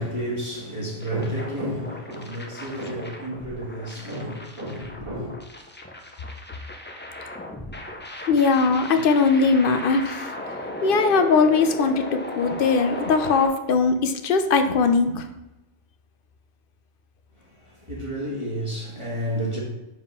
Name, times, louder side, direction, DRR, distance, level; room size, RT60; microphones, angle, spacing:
voice 1, 0.0-5.3 17.6-19.6, equal, 25° right, 1.6 m, -31 dB
sound 1, 1.0-13.5, left 1 dB, 15° left, 0.4 m, -36 dB
voice 2, 8.3-10.3 10.8-15.2, left 4 dB, 60° left, 0.7 m, -20 dB
4.8 x 3.6 x 5.5 m
omnidirectional pair, 1.1 m